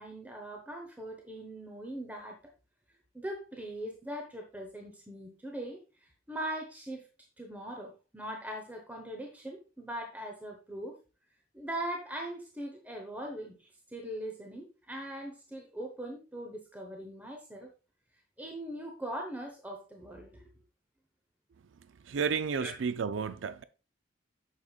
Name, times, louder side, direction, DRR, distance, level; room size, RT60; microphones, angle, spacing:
voice 1, 0.0-2.4 3.1-7.0 7.4-11.0 11.5-17.7 18.4-20.5 22.6-22.7, right 1 dB, 10° right, 0.9 m, -41 dB
voice 2, 22.0-23.6, right 6 dB, 80° right, 0.4 m, -32 dB
8.5 x 6.6 x 2.4 m
head